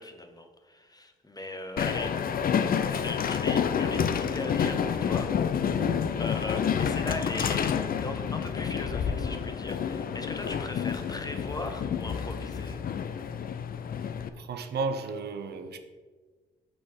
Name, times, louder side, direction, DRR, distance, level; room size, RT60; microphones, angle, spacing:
voice 1, 0.0-2.5 2.9-5.3 6.2-12.8, left 2 dB, 20° left, 6 dB, 0.9 m, -39 dB
Train, 1.8-14.3, left 7 dB, 50° left, 0.5 m, -29 dB
voice 2, 5.7-6.0 14.4-15.8, right 4 dB, 60° right, 8 dB, 0.6 m, -33 dB
5.8 x 4.0 x 4.8 m, 1.4 s
hypercardioid pair, 45°, 19 cm